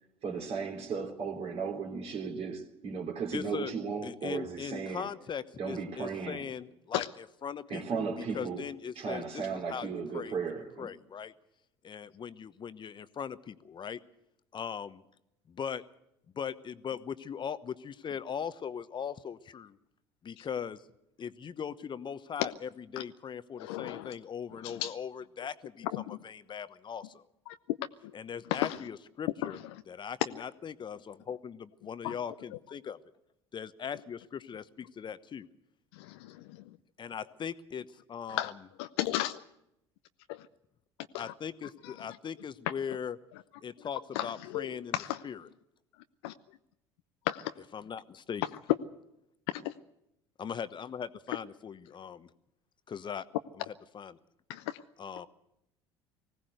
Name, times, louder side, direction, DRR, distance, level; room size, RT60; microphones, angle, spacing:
voice 1, 0.2-5.1 5.6-6.5 7.7-8.7 8.9-10.9, right 5 dB, 45° right, 3.1 m, -36 dB
voice 2, 3.3-3.7 4.0-7.1 7.4-8.1 8.3-10.3 10.8-11.3 11.8-14.0 14.5-15.0 15.5-15.8 16.3-19.8 20.2-20.8 21.2-27.2 28.1-29.6 29.9-33.0 33.5-35.5 37.0-38.5 41.2-43.2 43.6-45.0 45.2-45.4 47.7-48.4 50.4-52.3 52.9-53.2 53.5-53.6 53.9-54.2 55.0-55.3, left 7 dB, 35° left, 1.0 m, -39 dB
voice 3, 23.6-24.1 24.6-24.9 25.9-26.2 27.5-27.6 28.5-28.8 29.4-29.5 32.0-32.1 36.0-36.4 38.3-38.5 38.8-39.4 40.3-40.4 41.1-41.3 41.8-41.9 44.1-44.7 44.9-45.2 46.2-46.3 47.3-47.5 49.5-49.7 54.5-54.8, left 15 dB, 65° left, 0.7 m, -34 dB
20.0 x 17.0 x 8.0 m
hypercardioid pair, 65°, 14 cm